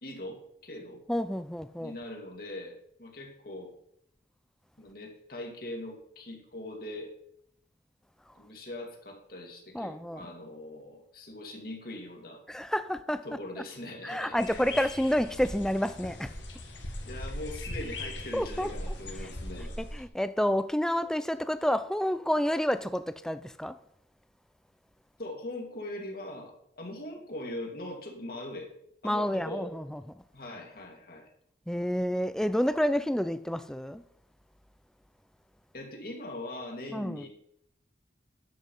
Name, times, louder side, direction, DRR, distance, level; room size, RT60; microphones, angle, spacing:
voice 1, 0.0-1.0 1.8-3.7 4.8-7.1 8.3-12.4 13.2-14.6 17.0-19.7 25.2-28.7 29.0-29.7 30.3-31.3 35.7-37.3, left 1 dB, 55° left, 2.3 m, -41 dB
voice 2, 1.1-1.9 9.7-10.3 12.5-13.3 14.0-16.3 18.3-18.7 19.8-23.8 29.0-30.0 31.7-34.0 36.9-37.3, equal, 5° left, 0.4 m, -29 dB
sound 1, 14.4-20.0, left 1 dB, 90° left, 2.1 m, -39 dB
10.5 x 7.3 x 5.5 m
head